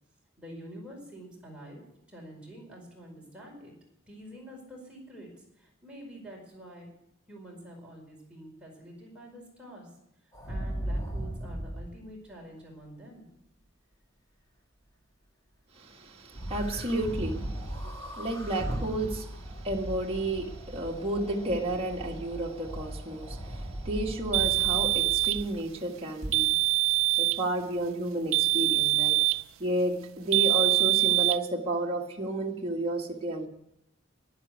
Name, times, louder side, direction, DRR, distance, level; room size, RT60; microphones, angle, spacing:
voice 1, 0.4-1.8 2.1-3.7 4.1-5.3 5.6-6.9 7.3-9.9 10.5-13.3, equal, 5° right, -3 dB, 4.9 m, -47 dB
sound 1, 10.3-11.9 16.3-25.6 26.2-26.3, right 1 dB, 20° left, 2.5 m, -37 dB
voice 2, 15.7-26.5 27.2-29.2 29.6-33.5, right 1 dB, 30° right, -1 dB, 1.6 m, -32 dB
sound 2, 24.3-25.5 26.3-27.5 28.3-29.5 30.3-31.4, right 19 dB, 85° right, 0.5 m, -24 dB
11.0 x 10.5 x 8.1 m, 0.80 s
head